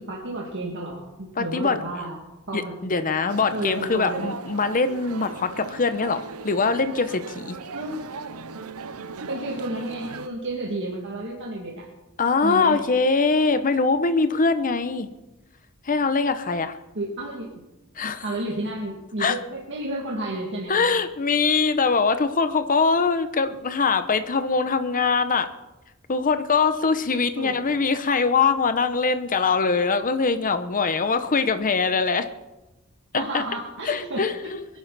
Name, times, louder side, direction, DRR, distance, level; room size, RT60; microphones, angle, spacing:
voice 1, 0.0-2.2 2.5-2.7 3.5-4.3 7.7-8.0 9.3-11.9 12.4-12.8 16.9-17.5 18.2-20.7 27.4-27.8 33.1-34.5, right 2 dB, 55° right, -3 dB, 2.4 m, -31 dB
voice 2, 1.4-1.8 2.5-7.6 12.2-15.1 15.8-16.8 18.0-18.3 19.2-19.4 20.7-25.5 26.1-32.2 33.1-33.4 33.8-34.7, left 4 dB, 40° left, 10 dB, 0.9 m, -22 dB
sound 1, 3.3-10.3, right 4 dB, 80° right, 0.8 m, -38 dB
23.0 x 11.0 x 4.2 m, 1.0 s
head